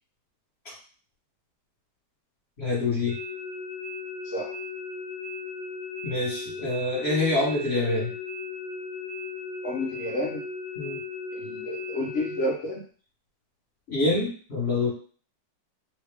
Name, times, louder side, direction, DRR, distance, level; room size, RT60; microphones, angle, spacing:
voice 1, 2.6-3.1 6.0-8.1 10.8-11.0 13.9-14.9, left 2 dB, 40° left, -7 dB, 1.4 m, -26 dB
sound 1, 3.1-12.5, left 4 dB, 75° right, 0.7 m, -36 dB
voice 2, 9.6-10.4 11.4-12.8, left 1 dB, 60° left, -4 dB, 0.8 m, -30 dB
3.3 x 2.2 x 3.3 m, 0.43 s
omnidirectional pair, 1.9 m